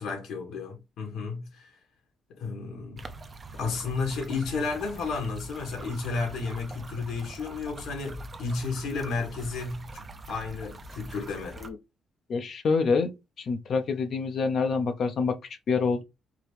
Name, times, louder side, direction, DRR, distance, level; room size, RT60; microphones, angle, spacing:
voice 1, 0.0-1.7 2.3-3.0 3.5-11.6, left 4 dB, 90° left, 2.2 m, -32 dB
sound 1, 3.0-11.7, right 2 dB, 25° right, 0.6 m, -43 dB
voice 2, 12.3-13.1 13.4-16.0, left 4 dB, 50° left, 0.6 m, -26 dB
4.7 x 2.9 x 3.3 m
cardioid pair, 150°, 0 cm